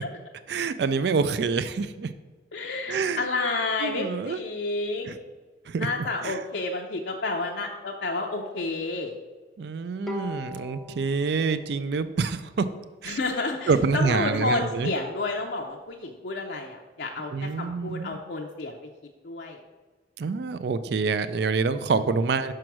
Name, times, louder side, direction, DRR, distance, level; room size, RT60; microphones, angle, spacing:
voice 1, 0.5-2.1 2.9-3.2 3.8-4.4 5.1-5.2 5.7-6.4 9.6-12.7 13.0-13.2 13.7-14.9 17.3-18.2 20.2-22.5, right 4 dB, 60° right, 13 dB, 0.3 m, -26 dB
voice 2, 2.5-5.2 5.8-9.1 13.0-18.8 19.2-19.6, left 3 dB, 60° left, 1 dB, 0.5 m, -30 dB
Bowed string instrument, 10.1-13.4, left 1 dB, ahead, 0.5 m, -41 dB
6.1 x 4.7 x 5.9 m, 1.3 s
head